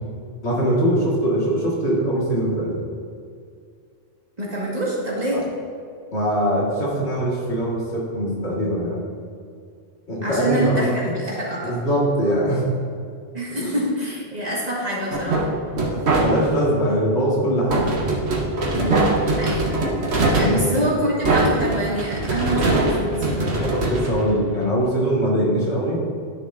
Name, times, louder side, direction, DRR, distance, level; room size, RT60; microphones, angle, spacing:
voice 1, 0.4-2.8 5.3-5.4 6.1-9.0 10.1-11.1 11.6-12.6 13.6-13.7 15.9-17.9 20.4-21.1 23.4-26.0, equal, 80° left, -5 dB, 2.2 m, -22 dB
voice 2, 4.4-5.4 10.2-11.7 13.3-15.4 18.7-19.7 20.2-23.6, right 1 dB, 40° right, -6 dB, 1.9 m, -26 dB
sound 1, 15.1-16.7 17.7-24.8, right 2 dB, 70° right, 1.2 m, -22 dB
10.5 x 6.4 x 2.6 m, 2.3 s
omnidirectional pair, 1.1 m